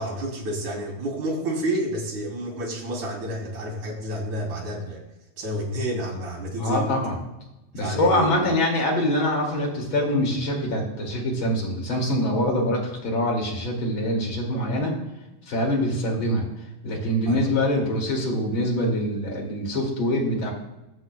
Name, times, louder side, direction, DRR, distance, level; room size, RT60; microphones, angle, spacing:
voice 1, 0.0-5.0 5.4-6.9 7.8-8.5 17.3-17.5, right 1 dB, 85° right, -3 dB, 4.6 m, -29 dB
voice 2, 6.6-7.2 7.7-14.9 15.5-16.4 16.8-20.5, left 1 dB, 45° left, 0 dB, 3.0 m, -24 dB
21.5 x 7.8 x 2.3 m, 0.97 s
omnidirectional pair, 3.3 m